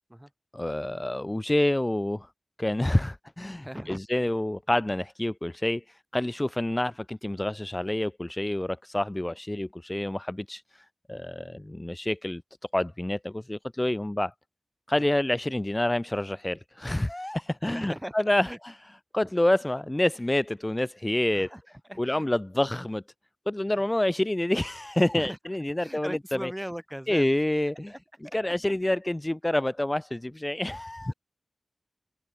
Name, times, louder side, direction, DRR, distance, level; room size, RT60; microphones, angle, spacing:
voice 1, 0.5-2.3 2.6-12.4 12.7-14.3 14.9-18.5 19.1-21.5 22.0-23.0 23.5-26.5 27.1-27.9 28.3-31.1, left 1 dB, 20° left, 1.6 m, -28 dB
voice 2, 3.6-4.0 17.6-18.2 18.4-18.6 21.3-22.2 23.7-23.8 25.1-25.4 25.8-27.3 27.7-28.5 28.9-29.0 31.1-31.2, equal, 5° right, 4.8 m, -39 dB
wide cardioid pair, 90°, 0 cm